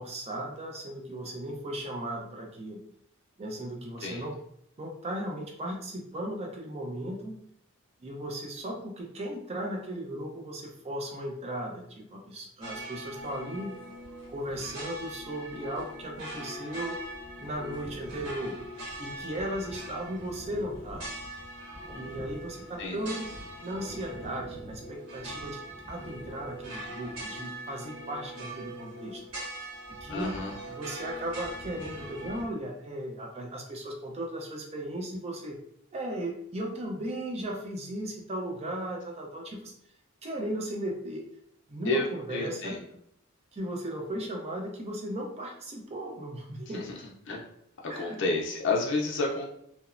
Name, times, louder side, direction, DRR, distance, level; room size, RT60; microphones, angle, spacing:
voice 1, 0.0-2.8 3.4-4.4 4.8-7.4 8.0-13.8 14.3-17.0 17.4-18.6 19.0-21.1 21.9-23.3 23.6-25.6 25.9-29.2 29.9-35.6 35.9-39.7 40.2-41.2 41.7-42.8 43.5-47.0 47.9-48.2, right 1 dB, 30° right, 1 dB, 0.5 m, -36 dB
sound 1, 12.6-32.4, right 1 dB, 80° right, 1.3 m, -41 dB
voice 2, 30.1-30.5 41.8-42.8 46.7-46.8 47.3-47.4 48.0-49.5, left 2 dB, 55° left, -2 dB, 0.5 m, -30 dB
2.9 x 2.0 x 2.4 m, 0.73 s
head